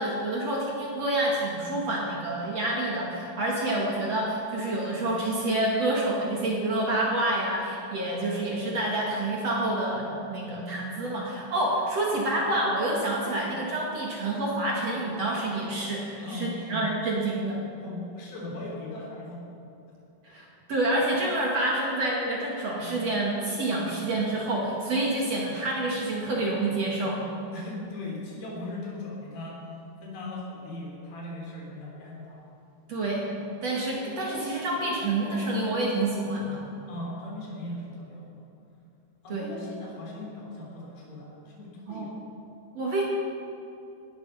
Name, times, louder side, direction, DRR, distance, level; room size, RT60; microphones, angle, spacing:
voice 1, 0.0-17.6 20.2-27.2 32.9-33.2 33.6-36.6 39.3-39.5 41.9-42.1 42.7-43.0, right 1 dB, 45° right, -3 dB, 2.7 m, -28 dB
voice 2, 16.2-16.9 17.8-19.4 27.5-29.6 30.0-32.5 36.9-38.5 39.2-42.2, left 1 dB, 70° left, -3 dB, 5.3 m, -38 dB
18.5 x 12.5 x 5.7 m, 2.7 s
omnidirectional pair, 4.6 m